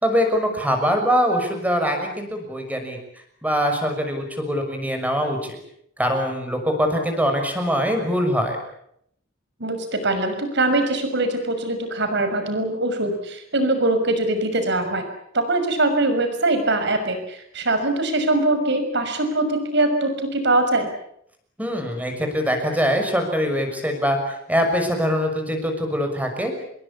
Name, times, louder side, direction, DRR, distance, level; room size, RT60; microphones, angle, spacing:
voice 1, 0.0-3.0 3.4-5.6 6.0-8.6 21.6-26.5, equal, 10° right, 5 dB, 6.2 m, -23 dB
voice 2, 9.6-15.1 15.3-20.9, right 2 dB, 60° right, 7 dB, 6.2 m, -22 dB
27.0 x 22.0 x 8.6 m, 0.73 s
head